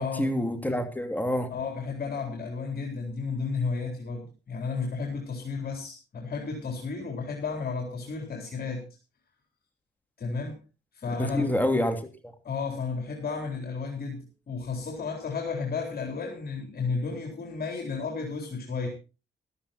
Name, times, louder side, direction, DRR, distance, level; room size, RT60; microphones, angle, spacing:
voice 1, 0.0-1.5 11.2-12.3, left 1 dB, 10° left, 6 dB, 3.1 m, -27 dB
voice 2, 1.5-8.8 10.2-10.6 10.9-11.5 12.4-18.9, left 4 dB, 55° left, 1 dB, 3.9 m, -33 dB
13.5 x 13.5 x 4.4 m, 0.33 s
cardioid pair, 70°, 19 cm